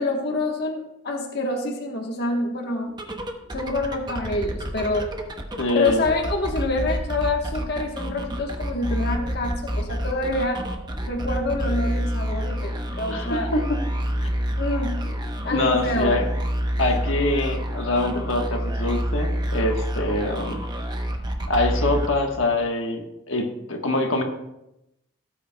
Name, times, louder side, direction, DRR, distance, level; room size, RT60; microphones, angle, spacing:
voice 1, 0.0-2.9 3.5-5.1 5.7-10.6 11.1-13.5 14.6-15.0 15.4-16.2, left 2 dB, 50° left, 0 dB, 1.2 m, -26 dB
sound 1, 2.9-22.6, equal, 20° right, 0.8 m, -28 dB
voice 2, 5.6-6.0 13.1-13.8 15.0-15.1 15.5-16.3 16.8-20.6 21.5-24.2, left 2 dB, 70° left, 2 dB, 1.3 m, -24 dB
17.0 x 8.5 x 2.2 m, 0.87 s
head